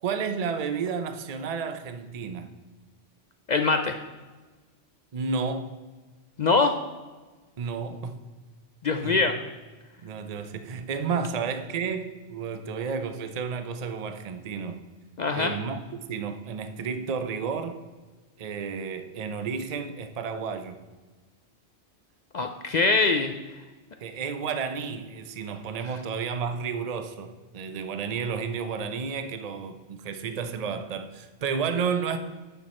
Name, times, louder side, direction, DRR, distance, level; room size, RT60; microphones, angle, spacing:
voice 1, 0.0-2.5 5.1-5.7 7.6-8.1 9.0-9.3 10.0-14.8 15.3-17.8 18.4-20.8 24.0-32.2, right 5 dB, 40° right, 9 dB, 0.6 m, -31 dB
voice 2, 3.5-4.0 6.4-6.7 8.8-9.3 15.2-15.6 22.3-23.3, left 4 dB, 55° left, 6 dB, 0.5 m, -23 dB
8.9 x 6.1 x 4.3 m, 1.3 s
omnidirectional pair, 1.2 m